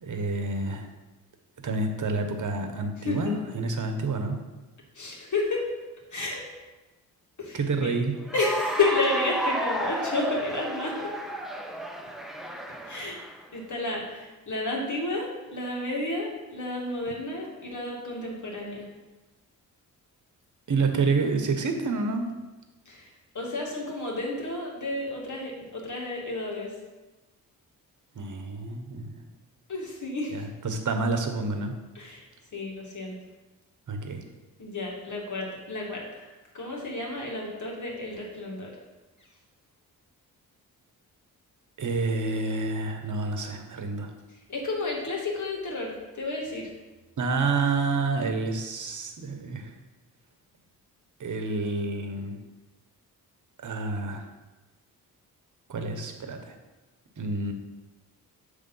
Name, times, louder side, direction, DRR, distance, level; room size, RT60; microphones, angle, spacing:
voice 1, 0.0-0.9 1.6-4.4 7.5-8.2 20.7-22.3 28.1-29.1 30.3-31.7 33.9-34.2 41.8-44.1 47.2-49.7 51.2-52.4 53.6-54.3 55.7-56.6 57.2-57.5, right 3 dB, 50° right, 5 dB, 1.1 m, -28 dB
voice 2, 3.0-3.3 5.0-5.6 6.1-6.4 7.4-7.9 8.3-11.0 12.8-13.2 13.5-18.9 22.9-23.1 23.3-26.7 29.7-30.3 32.0-32.2 32.5-33.2 34.6-36.3 36.5-38.7 44.5-46.7, left 2 dB, 50° left, -2 dB, 2.2 m, -31 dB
Cheering / Applause, 8.2-13.4, right 1 dB, ahead, 0.8 m, -32 dB
7.5 x 3.4 x 5.5 m, 1.1 s
cardioid pair, 60°, 38 cm